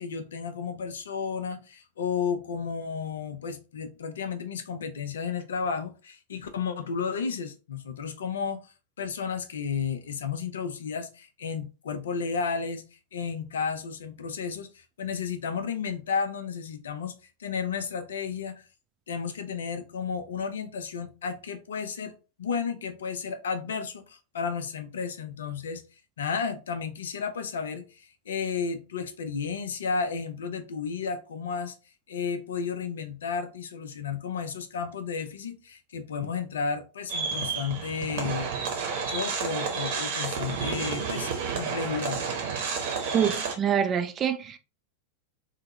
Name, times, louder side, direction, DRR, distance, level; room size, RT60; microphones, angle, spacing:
voice 1, 0.0-8.6 9.0-12.9 13.1-17.1 17.4-18.6 19.1-22.1 22.4-25.8 26.2-31.8 32.1-38.8 39.1-41.3 41.6-42.2, left 6 dB, 65° left, 0.4 m, -32 dB
sound 1, 37.1-43.5, right 6 dB, 50° right, 0.8 m, -31 dB
voice 2, 43.1-44.6, right 8 dB, 25° right, 0.3 m, -26 dB
3.4 x 2.0 x 2.7 m
figure-of-eight pair, 90°, 0 cm